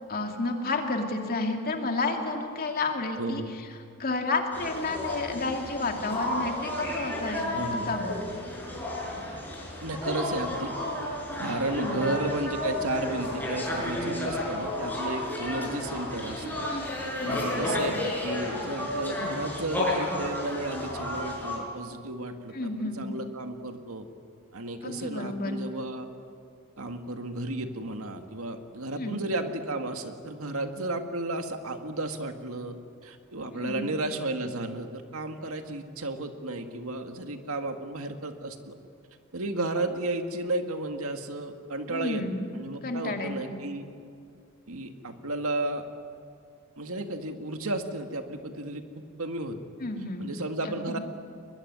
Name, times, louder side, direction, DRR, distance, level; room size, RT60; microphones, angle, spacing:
voice 1, 0.1-3.7 4.0-8.1 11.7-12.0 17.2-17.7 22.5-23.0 24.8-25.6 29.0-29.3 33.5-33.9 41.9-42.5 42.8-43.6 49.8-50.2 50.6-51.0, left 3 dB, 45° left, 3 dB, 2.7 m, -31 dB
voice 2, 3.2-3.5 7.5-7.9 9.8-10.7 11.4-16.7 17.3-24.1 24.5-26.1 26.8-38.8 39.3-42.2 42.5-43.9 44.7-45.9 46.8-49.6 50.2-51.0, right 2 dB, 70° right, 6 dB, 2.0 m, -33 dB
sound 1, 4.5-21.6, left 1 dB, 10° left, 6.0 m, -32 dB
22.5 x 21.5 x 9.8 m, 2.3 s
head